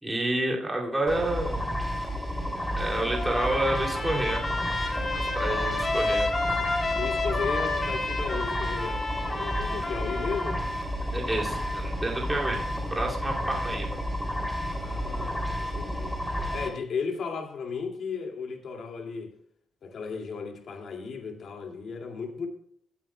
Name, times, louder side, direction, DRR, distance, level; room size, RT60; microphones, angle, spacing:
voice 1, 0.0-1.6 2.8-4.4 5.1-6.3 11.1-12.6 12.9-14.0, right 1 dB, 15° right, 2.7 m, -29 dB
sound 1, 1.1-16.7, equal, 5° left, 3.0 m, -31 dB
Trumpet, 3.0-10.6, left 3 dB, 30° left, 3.2 m, -31 dB
voice 2, 6.9-10.6 14.8-16.2 16.5-19.3 19.8-22.5, left 5 dB, 65° left, 2.3 m, -35 dB
17.5 x 9.2 x 2.3 m
cardioid pair, 105°, 0 cm